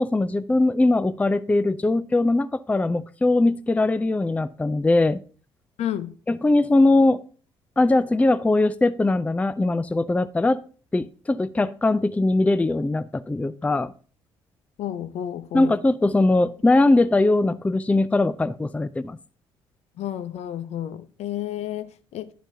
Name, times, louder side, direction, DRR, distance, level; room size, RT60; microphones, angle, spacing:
voice 1, 0.0-5.2 6.3-7.2 7.8-10.6 10.9-13.9 15.5-19.2, left 2 dB, 10° left, 0.4 m, -21 dB
voice 2, 5.8-6.1 14.8-15.7 20.0-22.3, left 11 dB, 60° left, 0.6 m, -31 dB
10.5 x 7.1 x 2.7 m
hypercardioid pair, 50°, 12 cm